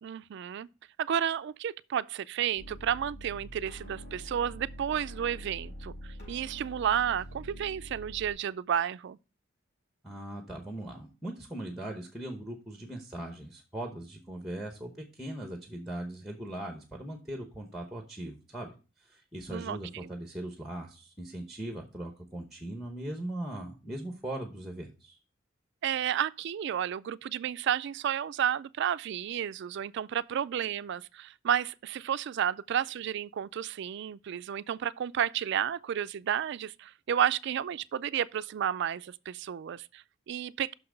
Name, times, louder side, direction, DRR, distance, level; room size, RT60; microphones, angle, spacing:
voice 1, 0.0-0.7 1.0-9.2 19.5-20.1 25.8-40.7, right 9 dB, 60° right, 0.3 m, -32 dB
sound 1, 2.6-8.3, equal, 65° left, 4.3 m, -45 dB
voice 2, 10.0-18.7 19.0-25.2, right 1 dB, ahead, 0.9 m, -39 dB
6.1 x 5.8 x 5.0 m
head